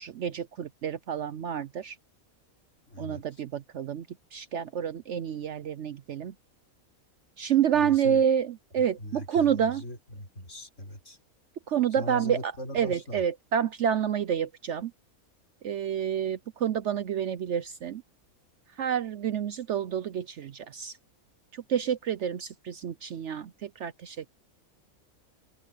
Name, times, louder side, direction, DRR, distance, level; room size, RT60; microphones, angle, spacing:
voice 1, 0.0-2.0 3.0-4.1 4.3-6.3 7.4-8.5 8.7-9.8 11.7-14.9 15.6-18.0 18.8-20.9 21.5-24.3, right 8 dB, 60° right, 0.9 m, -28 dB
voice 2, 2.9-3.4 7.7-8.2 8.8-11.2 11.9-13.2, left 1 dB, 55° left, 5.7 m, -40 dB
open air
omnidirectional pair, 1.5 m